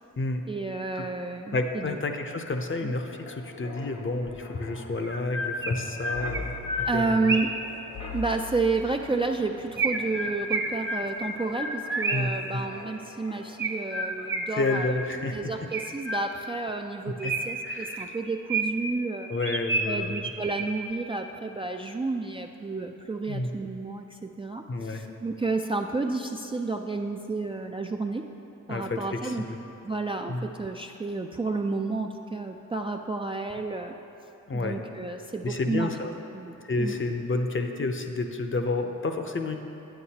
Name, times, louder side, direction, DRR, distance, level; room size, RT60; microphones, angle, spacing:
voice 1, 0.5-2.0 2.8-2.9 6.9-7.5 8.1-15.0 15.3-19.3 19.8-28.2 28.7-29.5 29.8-33.9 34.5-35.9 36.3-37.0, right 3 dB, 15° right, 2 dB, 0.3 m, -31 dB
Wind, 1.5-13.9 14.2-14.4, left 3 dB, 60° left, 1.2 m, -44 dB
voice 2, 1.5-6.5 6.9-7.4 12.1-12.6 14.5-15.4 17.1-17.3 17.6-18.1 19.3-20.2 23.3-23.5 24.7-25.1 28.7-29.6 30.3-30.5 34.5-34.8 35.4-36.1 36.6-39.6, left 2 dB, 40° left, 5 dB, 0.7 m, -30 dB
Chirp tweet, 5.0-7.7 9.8-12.4 13.6-15.2 15.7-16.6 17.2-19.0 19.4-20.9, right 2 dB, 35° right, 0.8 m, -30 dB
9.0 x 8.0 x 2.9 m, 3.0 s
cardioid pair, 50°, 33 cm